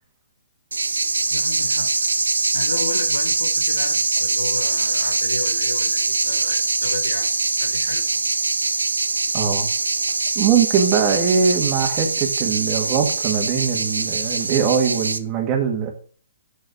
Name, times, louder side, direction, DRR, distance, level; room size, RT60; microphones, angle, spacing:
sound 1, 0.7-15.2, right 3 dB, 90° right, 0.6 m, -23 dB
voice 1, 1.3-2.1 2.5-8.5, left 3 dB, 90° left, 5 dB, 1.6 m, -33 dB
voice 2, 9.3-9.7 10.4-15.9, right 7 dB, 25° right, 3 dB, 2.0 m, -21 dB
6.5 x 6.3 x 6.3 m, 0.43 s
hypercardioid pair, 135°, 0 cm